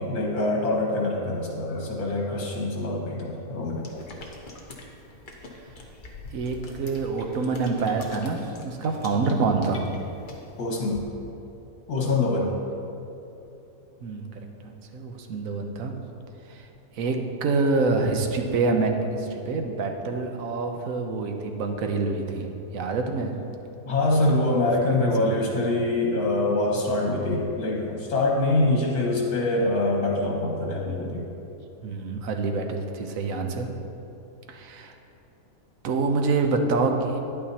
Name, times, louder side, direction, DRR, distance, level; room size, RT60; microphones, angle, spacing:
voice 1, 0.0-4.0 10.6-11.0 11.9-12.5 23.9-31.3, left 2 dB, 80° left, -2 dB, 2.0 m, -24 dB
sound 1, 3.8-11.0, left 2 dB, 40° left, 0.9 m, -44 dB
voice 2, 6.3-9.9 14.0-14.3 14.6-15.9 16.5-16.7 16.9-17.2 17.4-22.5 22.7-23.3 24.3-25.4 31.8-33.7 34.5-34.9 35.8-37.2, right 3 dB, 65° right, 4 dB, 1.1 m, -26 dB
10.5 x 8.8 x 2.8 m, 2.9 s
omnidirectional pair, 1.6 m